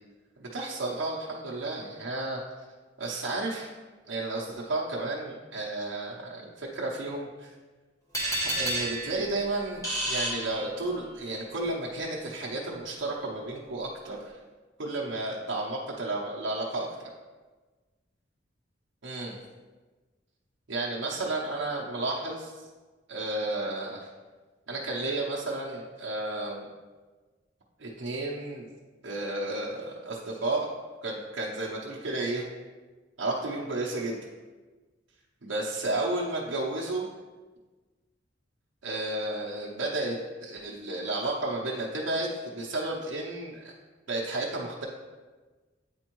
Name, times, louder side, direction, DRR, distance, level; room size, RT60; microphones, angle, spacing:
voice 1, 0.4-2.4 3.0-3.7 4.1-7.5 8.5-14.2 14.8-17.1 19.0-19.4 20.7-22.5 23.1-24.1 24.7-26.7 27.8-28.7 29.0-30.7 31.0-32.4 33.2-34.2 35.4-37.1 38.8-43.7 44.1-44.9, right 2 dB, 90° right, -4 dB, 0.7 m, -32 dB
sound 1, 8.1-11.2, right 1 dB, 15° left, 1.2 m, -31 dB
8.4 x 4.4 x 3.0 m, 1.3 s
head